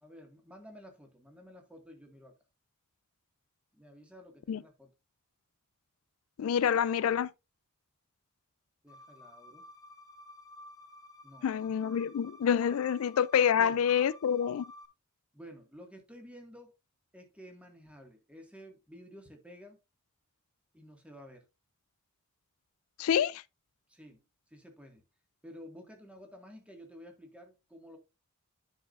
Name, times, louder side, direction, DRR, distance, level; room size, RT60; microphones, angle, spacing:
voice 1, 0.0-2.4 3.7-4.9 8.8-9.7 11.2-11.7 13.5-13.8 15.3-16.7 17.1-19.8 20.7-21.4 23.9-24.2 24.5-25.0 25.4-28.0, equal, 5° right, 1.8 m, -52 dB
voice 2, 6.4-7.3 11.4-14.7 23.0-23.4, left 8 dB, 80° left, 0.4 m, -27 dB
sound 1, 8.9-14.8, left 1 dB, 15° left, 1.0 m, -53 dB
10.0 x 6.1 x 2.5 m
head